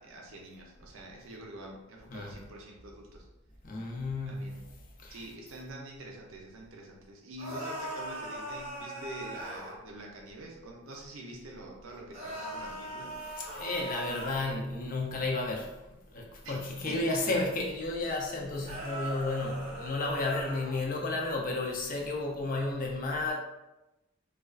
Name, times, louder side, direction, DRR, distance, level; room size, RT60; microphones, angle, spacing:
voice 1, 0.0-3.3 4.3-4.6 5.1-13.2 16.4-16.6 16.9-17.2 20.2-20.4, right 1 dB, 75° right, 0 dB, 0.5 m, -46 dB
voice 2, 3.6-4.6 5.0-5.2 13.2-15.8 16.1-23.3, left 2 dB, 40° left, -1 dB, 0.4 m, -32 dB
sound 1, 7.4-9.8 12.1-14.4 18.7-20.8, equal, 30° right, 0.5 m, -40 dB
2.3 x 2.3 x 2.3 m, 0.98 s
head